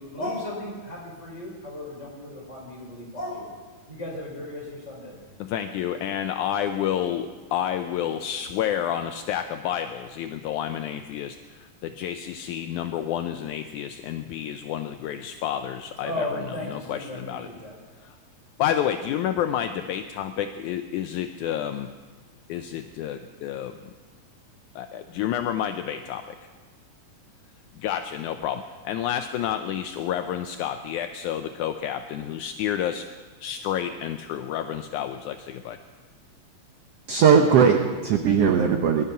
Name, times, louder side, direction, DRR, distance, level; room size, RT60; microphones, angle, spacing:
voice 1, 0.0-3.5 3.9-5.2 16.0-17.8, left 1 dB, 20° left, -3 dB, 4.9 m, -35 dB
voice 2, 5.4-17.5 18.0-18.2 18.6-21.9 22.5-23.8 24.8-26.4 27.8-33.1 33.4-35.8, left 10 dB, 80° left, 8 dB, 1.8 m, -29 dB
voice 3, 37.1-39.0, right 6 dB, 75° right, 5 dB, 1.4 m, -18 dB
20.0 x 12.0 x 5.6 m, 1.4 s
omnidirectional pair, 3.9 m